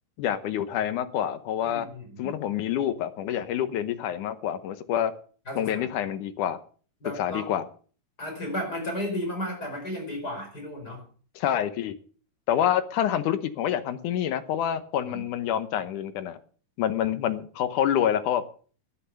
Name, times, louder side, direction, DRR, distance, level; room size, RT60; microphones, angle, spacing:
voice 1, 0.2-1.9 2.2-5.1 5.6-6.6 7.2-7.6 11.4-11.9 12.5-16.4 16.8-18.4, left 10 dB, 70° left, 12 dB, 2.3 m, -27 dB
voice 2, 1.6-2.3 5.5-5.9 7.0-7.5 8.2-11.0 15.0-15.2, left 1 dB, 25° left, 2 dB, 5.2 m, -34 dB
11.5 x 11.0 x 6.6 m, 0.41 s
omnidirectional pair, 4.1 m